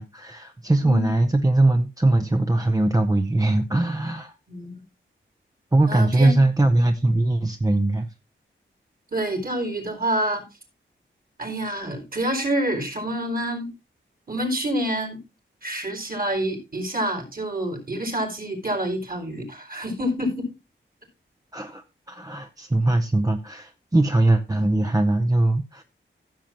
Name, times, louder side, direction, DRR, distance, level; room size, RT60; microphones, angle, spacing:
voice 1, 0.0-4.3 5.7-8.1 21.5-25.8, right 2 dB, 15° right, 0.7 m, -21 dB
voice 2, 0.8-1.1 4.5-4.8 5.9-6.4 9.1-10.4 11.4-13.7 14.3-15.2 15.6-20.5, right 1 dB, 45° right, 4.4 m, -27 dB
15.0 x 7.5 x 3.0 m
wide cardioid pair, 110°, 20 cm